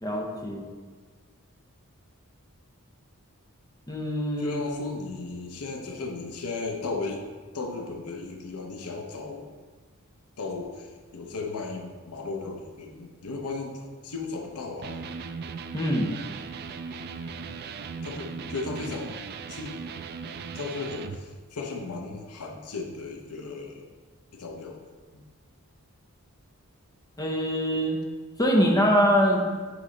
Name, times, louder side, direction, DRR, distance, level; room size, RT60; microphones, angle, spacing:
voice 1, 0.0-0.7 3.9-4.6 15.7-16.1 27.2-28.0 28.4-29.5, equal, 15° left, 0 dB, 0.7 m, -23 dB
voice 2, 4.4-7.2 7.5-9.5 10.4-15.0 18.0-19.1 19.5-19.8 20.5-23.9 24.3-24.8 25.1-25.2, left 3 dB, 80° left, 2 dB, 0.8 m, -35 dB
Electric guitar, 14.8-21.2, right 5 dB, 45° right, 0.3 m, -38 dB
8.9 x 3.1 x 3.8 m, 1.5 s
head